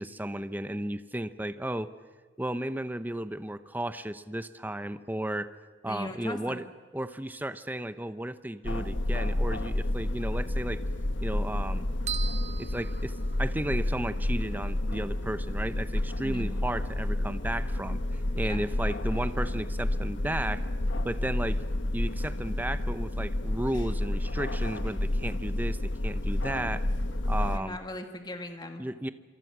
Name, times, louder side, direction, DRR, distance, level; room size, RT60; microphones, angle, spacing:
voice 1, 0.0-1.9 2.4-5.5 5.8-6.6 6.9-10.8 11.2-11.9 12.5-20.6 21.0-21.6 21.9-26.8 27.2-27.8 28.8-29.1, right 1 dB, 10° right, 12 dB, 0.8 m, -34 dB
voice 2, 5.9-6.6 16.2-16.5 18.4-18.6 27.5-29.1, left 1 dB, 25° left, 5 dB, 2.2 m, -39 dB
sound 1, 8.6-27.6, left 1 dB, 85° left, 1.4 m, -30 dB
sound 2, 12.1-13.8, right 9 dB, 40° right, 1.4 m, -39 dB
27.0 x 25.0 x 6.2 m, 1.4 s
head